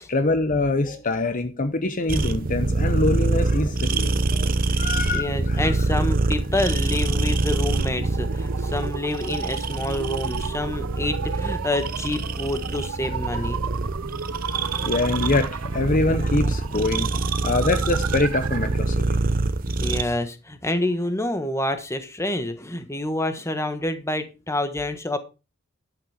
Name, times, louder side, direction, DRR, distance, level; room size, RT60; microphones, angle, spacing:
voice 1, 0.0-5.7 13.0-13.8 14.1-19.2, left 2 dB, 40° left, 0.9 m, -25 dB
sound 1, 2.1-20.0, right 2 dB, 40° right, 0.9 m, -25 dB
voice 2, 5.1-13.6 19.8-25.2, left 1 dB, 15° left, 1.4 m, -27 dB
sound 2, 6.2-18.9, right 7 dB, 85° right, 0.5 m, -35 dB
11.5 x 8.4 x 5.0 m
head